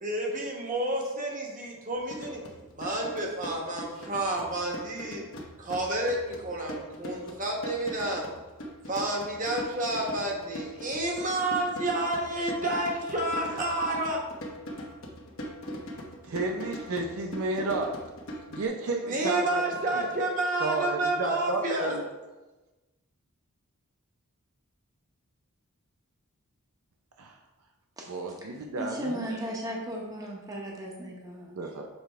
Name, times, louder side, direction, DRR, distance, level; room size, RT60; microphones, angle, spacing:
voice 1, 0.0-2.4 2.7-5.3 5.6-8.2 8.9-14.2 19.1-21.9, right 1 dB, 35° right, -1 dB, 1.2 m, -30 dB
sound 1, 1.9-18.6, equal, 60° left, 1.0 m, -41 dB
voice 2, 16.2-18.0 18.5-20.0 20.6-22.0 27.2-27.3 28.1-29.3 31.5-31.9, right 2 dB, 70° right, 3 dB, 0.5 m, -32 dB
voice 3, 28.4-31.7, equal, 15° right, -2 dB, 0.9 m, -36 dB
7.0 x 3.4 x 4.4 m, 1.1 s
head